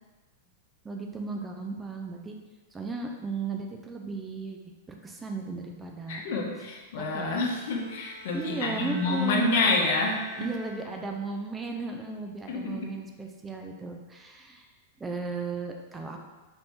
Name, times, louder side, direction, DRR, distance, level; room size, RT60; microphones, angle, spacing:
voice 1, 0.8-2.3 2.7-4.6 4.9-6.2 7.0-7.5 8.3-9.7 10.4-14.7 15.0-16.2, right 4 dB, 15° right, 2 dB, 0.4 m, -35 dB
voice 2, 6.1-10.2 12.5-12.9, left 3 dB, 65° left, 0 dB, 0.8 m, -28 dB
Bowed string instrument, 7.1-11.2, right 3 dB, 65° right, 1.1 m, -44 dB
4.3 x 2.7 x 3.5 m, 1.2 s
hypercardioid pair, 135°, 0 cm